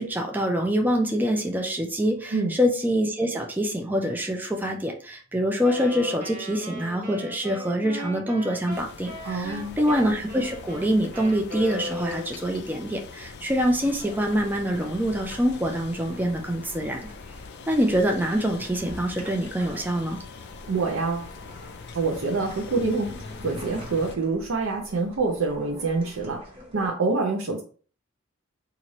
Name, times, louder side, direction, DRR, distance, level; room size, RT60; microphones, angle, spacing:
voice 1, 0.0-17.1 17.7-20.2, equal, 10° right, 2 dB, 0.4 m, -25 dB
Wind instrument woodwind instrument, 5.6-12.6, left 2 dB, 45° right, 1.1 m, -37 dB
sound 1, 8.7-24.2, left 4 dB, 55° left, 0.4 m, -43 dB
voice 2, 9.2-9.8 20.7-21.3 21.9-23.1 23.4-26.4 26.7-27.6, right 3 dB, 70° right, 0 dB, 0.5 m, -26 dB
sound 2, 13.5-26.9, equal, 25° right, 1.3 m, -47 dB
3.1 x 2.5 x 4.0 m, 0.41 s
head